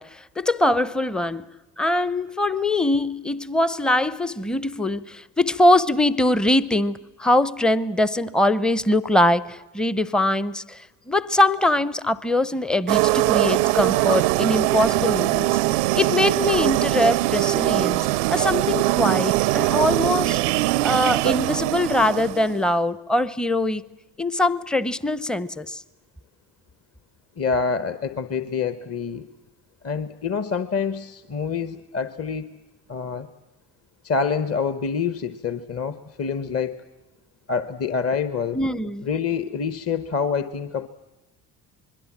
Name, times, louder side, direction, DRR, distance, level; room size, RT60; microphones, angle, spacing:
voice 1, 0.0-1.4 1.8-15.6 15.9-20.4 20.8-23.8 24.2-25.8 38.5-39.1, left 1 dB, ahead, 0.7 m, -22 dB
sound 1, 12.9-22.7, right 18 dB, 70° right, 0.7 m, -21 dB
voice 2, 27.4-29.3 29.8-32.5 32.9-33.3 34.0-36.8 37.5-38.6 39.0-40.9, left 5 dB, 30° left, 1.2 m, -26 dB
26.5 x 22.0 x 7.5 m
figure-of-eight pair, 50°, 48 cm